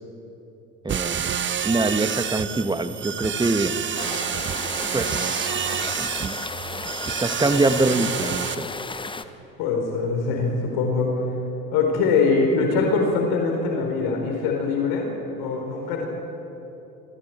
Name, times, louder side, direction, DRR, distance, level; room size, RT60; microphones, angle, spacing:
voice 1, 0.8-1.2 1.6-3.7 4.9-5.6 6.0-6.5 7.0-8.7, right 2 dB, 10° right, 10 dB, 1.3 m, -24 dB
sound 1, 0.9-8.5, right 8 dB, 25° right, 0.9 m, -28 dB
sound 2, 3.9-9.2, left 3 dB, 10° left, 1.0 m, -34 dB
voice 2, 9.6-11.1 11.7-15.1 15.4-16.1, left 4 dB, 60° left, 1 dB, 3.8 m, -23 dB
26.5 x 25.0 x 4.4 m, 2.9 s
hypercardioid pair, 70°, 42 cm